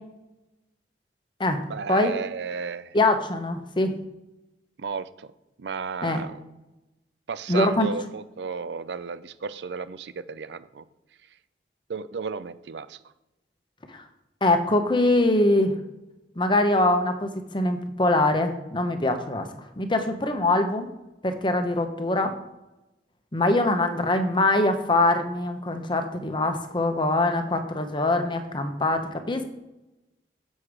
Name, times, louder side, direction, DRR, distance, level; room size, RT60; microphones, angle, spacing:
voice 1, 1.7-3.0 4.8-5.3 5.6-6.4 7.3-10.8 11.9-13.0, right 5 dB, 75° right, 14 dB, 0.5 m, -33 dB
voice 2, 2.9-3.9 6.0-6.2 7.5-7.9 13.9-14.0 14.4-15.7 16.4-19.5 19.8-20.9 21.2-22.3 23.3-29.4, left 2 dB, 30° left, 7 dB, 0.9 m, -23 dB
7.7 x 6.3 x 4.8 m, 0.98 s
head